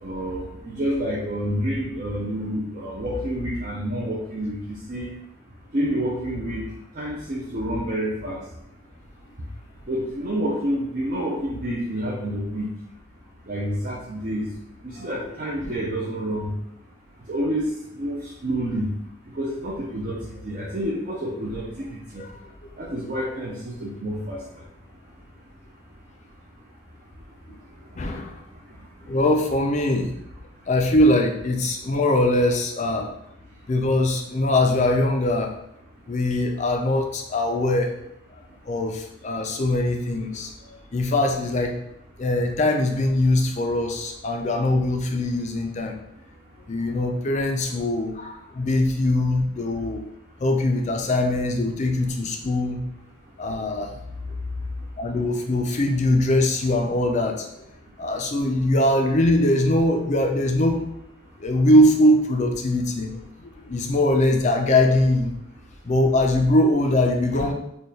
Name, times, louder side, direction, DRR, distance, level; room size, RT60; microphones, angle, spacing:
voice 1, 0.0-4.6 4.9-5.1 5.7-6.7 7.0-8.4 9.9-12.7 13.5-14.4 14.8-16.5 17.3-17.6 17.9-18.9 19.3-22.0 22.8-24.4 40.6-40.7, equal, 40° right, -5 dB, 0.5 m, -28 dB
voice 2, 28.0-28.4 29.1-30.1 30.7-33.1 33.7-35.5 36.1-37.9 38.7-40.5 40.9-41.7 42.2-46.0 46.7-50.1 50.4-52.8 53.4-53.9 55.0-57.5 58.0-60.8 61.4-63.1 63.4-65.3 65.9-67.5, left 1 dB, 35° left, 4 dB, 0.4 m, -22 dB
4.1 x 2.3 x 3.3 m, 0.81 s
head